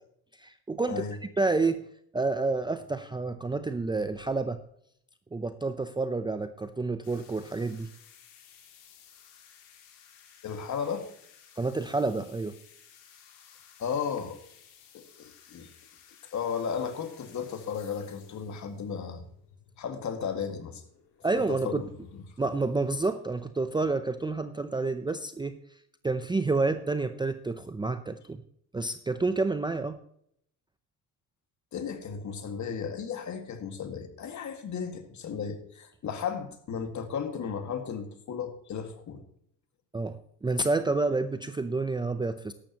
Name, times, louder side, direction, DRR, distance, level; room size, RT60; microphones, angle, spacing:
voice 1, 0.4-1.0 1.4-1.8 2.1-4.6 5.3-7.9 11.6-12.6 21.2-21.8 22.4-25.6 26.0-28.4 28.7-30.0 39.9-42.5, right 3 dB, 10° right, 10 dB, 0.6 m, -29 dB
sound 1, 7.0-23.5, left 8 dB, 85° left, 2.9 m, -57 dB
voice 2, 10.4-11.1 13.8-14.4 14.9-15.7 16.3-19.2 19.8-20.8 21.3-21.9 31.7-39.2, left 6 dB, 45° left, 7 dB, 2.0 m, -34 dB
14.5 x 11.5 x 2.9 m, 0.69 s
cardioid pair, 120°, 41 cm